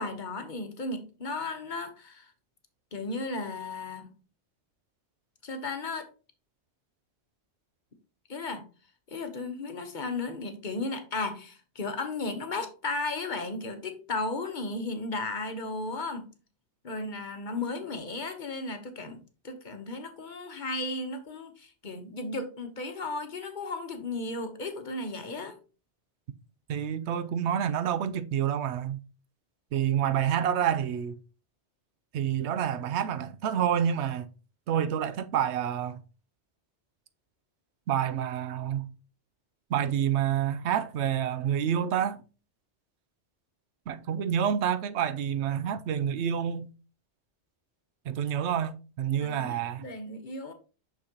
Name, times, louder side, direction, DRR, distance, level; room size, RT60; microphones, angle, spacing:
voice 1, 0.0-2.3 2.9-4.1 5.4-6.1 8.3-8.6 9.1-16.3 16.8-25.5 49.2-50.5, left 2 dB, 45° left, 1.0 m, -35 dB
voice 2, 26.7-29.0 29.7-31.2 32.1-34.3 34.7-36.0 37.9-38.9 39.7-42.2 43.9-46.7 48.1-49.9, right 9 dB, 85° right, 0.9 m, -28 dB
6.1 x 6.0 x 2.9 m
omnidirectional pair, 1.1 m